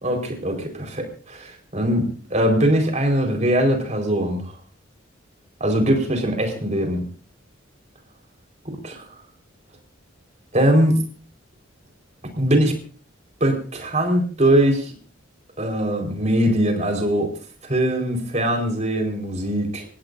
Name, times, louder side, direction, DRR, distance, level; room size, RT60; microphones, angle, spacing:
voice 1, 0.0-4.5 5.6-7.1 8.8-9.0 10.5-11.0 12.3-12.7 13.4-14.9 15.6-17.3 17.6-19.8, right 1 dB, 35° right, 3 dB, 4.6 m, -21 dB
28.0 x 16.0 x 2.7 m, 0.41 s
head